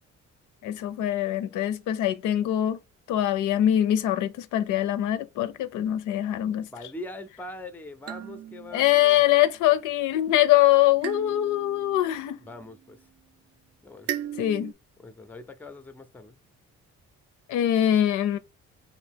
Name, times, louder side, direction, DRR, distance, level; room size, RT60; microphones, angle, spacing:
voice 1, 0.6-2.8 3.1-6.7 8.7-12.4 14.4-14.7 17.5-18.4, left 12 dB, 85° left, 0.5 m, -23 dB
voice 2, 6.5-9.2 12.4-13.0 13.8-14.1 15.0-16.4, left 2 dB, 5° left, 0.4 m, -42 dB
sound 1, 8.1-9.7 11.0-13.1 14.1-14.7, right 10 dB, 55° right, 0.4 m, -38 dB
2.9 x 2.6 x 3.4 m
cardioid pair, 90°, 30 cm